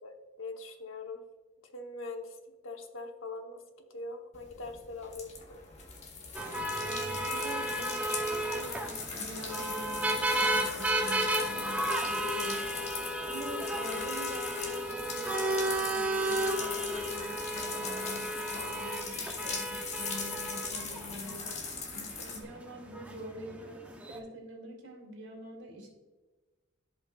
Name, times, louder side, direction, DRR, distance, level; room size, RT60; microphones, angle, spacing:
voice 1, 0.0-1.2 1.6-2.4 2.6-3.6 3.9-5.7, left 3 dB, 90° left, 4 dB, 1.0 m, -42 dB
sound 1, 4.3-22.4, left 4 dB, 35° left, 1.1 m, -40 dB
sound 2, 6.3-24.2, right 1 dB, 5° right, 0.6 m, -33 dB
voice 2, 6.8-21.5 21.9-25.9, right 1 dB, 65° right, -1 dB, 2.4 m, -45 dB
14.5 x 5.3 x 2.3 m, 1.2 s
head